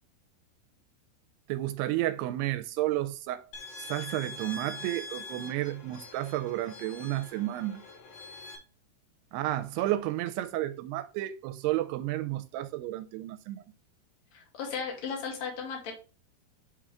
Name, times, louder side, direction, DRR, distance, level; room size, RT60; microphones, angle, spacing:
voice 1, 1.5-3.4 3.8-7.8 9.3-13.6, right 15 dB, 85° right, 2.5 m, -32 dB
sound 1, 3.5-8.6, left 2 dB, 65° left, 3.0 m, -44 dB
voice 2, 14.3-15.9, left 6 dB, 50° left, 3.1 m, -36 dB
8.9 x 3.7 x 3.3 m
omnidirectional pair, 4.6 m